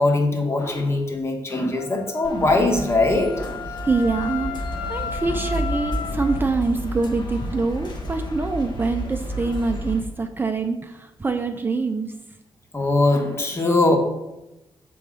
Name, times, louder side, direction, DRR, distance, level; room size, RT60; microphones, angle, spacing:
voice 1, 0.0-3.6 12.7-14.0, left 2 dB, 30° left, 3 dB, 1.4 m, -21 dB
Wind instrument woodwind instrument, 1.8-6.5, left 7 dB, 85° left, 0.5 m, -34 dB
sound 1, 2.2-10.0, equal, 55° left, 1.2 m, -31 dB
voice 2, 3.8-12.1, right 3 dB, 25° right, 5 dB, 0.5 m, -25 dB
6.9 x 3.9 x 6.1 m, 0.95 s
cardioid pair, 120°, 9 cm